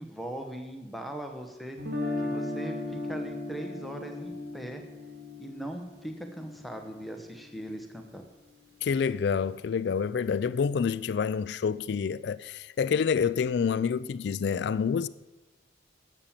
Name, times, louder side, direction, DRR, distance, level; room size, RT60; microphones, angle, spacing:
voice 1, 0.0-1.9 2.2-4.8 5.4-8.2, right 1 dB, ahead, 0.9 m, -39 dB
Guitar, 1.8-7.8, left 2 dB, 60° right, 2.4 m, -37 dB
voice 2, 8.8-15.1, left 6 dB, 70° left, 0.3 m, -28 dB
11.5 x 7.2 x 7.3 m
head